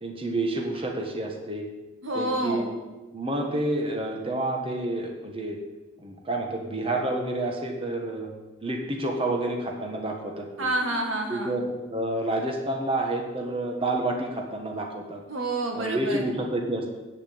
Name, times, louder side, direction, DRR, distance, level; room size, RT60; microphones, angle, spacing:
voice 1, 0.0-1.7 2.1-2.7 3.1-5.6 6.0-8.3 8.6-10.7 11.3-15.2 15.7-16.9, right 1 dB, 30° right, 1 dB, 1.4 m, -29 dB
voice 2, 2.0-2.7 10.6-11.6 15.3-16.3, right 1 dB, 90° right, 2 dB, 2.0 m, -28 dB
8.5 x 6.9 x 8.5 m, 1.1 s
head